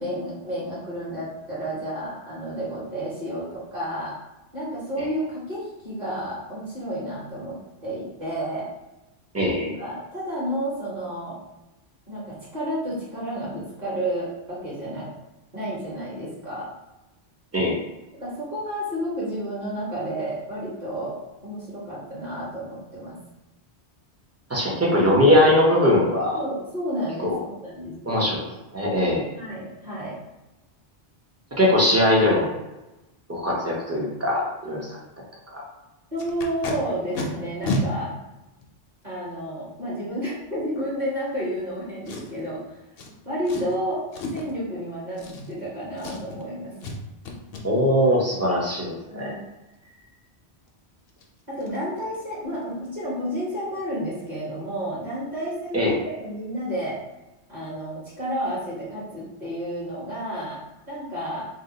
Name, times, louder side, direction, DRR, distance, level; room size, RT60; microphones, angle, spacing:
voice 1, 0.0-4.1 4.5-8.7 9.8-11.4 12.1-15.1 15.5-16.7 18.2-21.2 21.4-23.2 26.3-28.2 29.3-30.2 36.1-38.1 39.0-42.8 43.2-44.1 44.3-46.7 49.1-49.4 51.5-57.0 57.5-61.5, equal, 40° right, -9 dB, 1.2 m, -31 dB
voice 2, 9.3-9.7 17.5-17.8 24.5-26.4 27.2-27.4 28.1-28.5 28.7-29.2 31.5-32.5 33.3-35.0 35.5-35.6 47.6-49.3 55.7-55.9, left 1 dB, 20° right, -3 dB, 0.5 m, -21 dB
Packing tape duct tape, 36.2-36.7 37.1-37.2 37.6-37.8 38.6-38.7 42.1-42.5 43.0-43.1 43.4-43.8 44.1-44.5 45.1-45.7 46.0-46.4 46.8-47.0 47.2-47.6 50.7-50.8 51.1-51.2 51.6-51.8 52.0-52.3 52.5-52.6, left 1 dB, 65° left, 0.8 m, -31 dB
2.8 x 2.1 x 3.8 m, 1.0 s
omnidirectional pair, 1.1 m